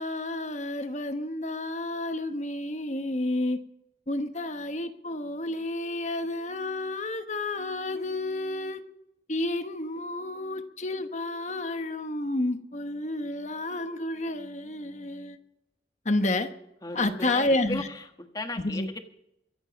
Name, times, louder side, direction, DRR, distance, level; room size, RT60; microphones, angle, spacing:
voice 1, 0.0-3.6 4.1-8.8 9.3-15.4 16.0-16.5 16.9-17.9 18.6-18.9, left 2 dB, 40° left, 8 dB, 1.1 m, -30 dB
voice 2, 16.8-19.0, left 2 dB, 20° left, 6 dB, 1.4 m, -36 dB
23.5 x 8.1 x 5.2 m, 0.80 s
head